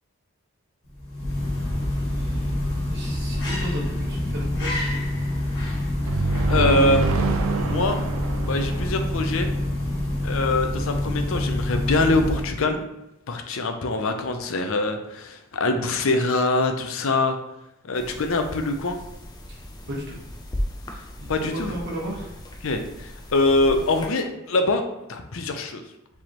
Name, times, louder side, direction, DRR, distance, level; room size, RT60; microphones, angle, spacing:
sound 1, 0.9-12.7, left 1 dB, 50° left, 1.7 m, -26 dB
voice 1, 2.0-2.6 2.9-5.0 6.5-6.8 19.5-20.2 21.2-22.4, equal, 50° right, -3 dB, 1.3 m, -35 dB
sound 2, 6.1-9.8, right 4 dB, 75° right, 0.4 m, -27 dB
voice 2, 6.5-7.2 7.5-8.0 8.5-9.5 10.2-12.9 13.3-17.4 17.8-19.0 21.3-21.8 22.6-24.8 25.1-25.8, left 2 dB, 70° left, 6 dB, 0.6 m, -24 dB
sound 3, 17.9-24.1, equal, 20° left, 0.5 m, -36 dB
4.9 x 3.5 x 3.0 m, 0.88 s
head